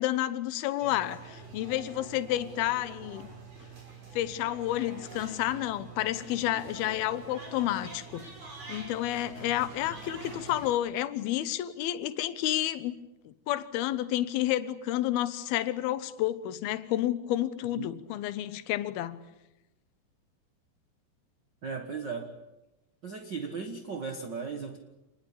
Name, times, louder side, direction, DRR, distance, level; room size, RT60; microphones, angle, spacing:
voice 1, 0.0-3.3 4.1-8.3 8.7-12.9 13.3-19.2, left 13 dB, 75° left, 2.9 m, -30 dB
sound 1, 0.8-10.7, right 3 dB, 55° right, 7.5 m, -46 dB
voice 2, 21.6-22.3 23.0-24.8, right 5 dB, 80° right, 0.9 m, -36 dB
27.0 x 20.5 x 8.6 m
omnidirectional pair, 4.6 m